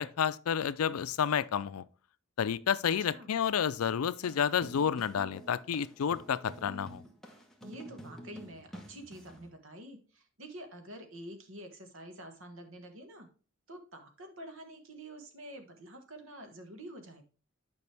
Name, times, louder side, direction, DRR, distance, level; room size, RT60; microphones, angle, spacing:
voice 1, 0.0-1.8 2.4-7.0, left 8 dB, 90° left, 0.4 m, -30 dB
sound 1, 4.1-9.5, right 1 dB, ahead, 1.1 m, -49 dB
voice 2, 7.6-13.3 13.7-17.2, right 1 dB, 65° right, 1.5 m, -48 dB
9.4 x 5.4 x 3.4 m
head